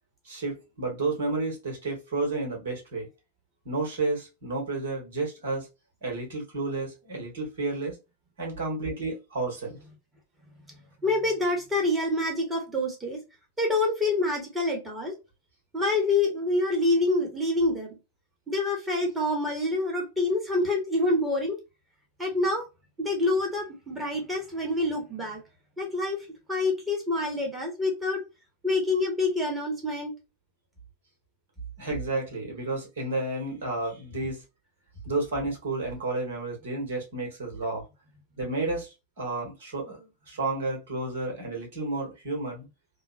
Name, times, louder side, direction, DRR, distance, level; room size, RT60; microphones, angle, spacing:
voice 1, 0.2-3.1 3.6-5.7 6.0-8.0 8.4-9.8 31.8-34.4 35.0-37.8 38.4-42.6, right 2 dB, 55° right, 1.3 m, -31 dB
voice 2, 10.7-13.2 13.6-15.1 15.7-18.0 18.5-21.6 22.2-22.7 23.0-25.4 25.8-26.2 26.5-28.2 28.6-30.1, left 2 dB, 10° right, 1.2 m, -27 dB
3.0 x 2.0 x 2.4 m
figure-of-eight pair, 90°, 0 cm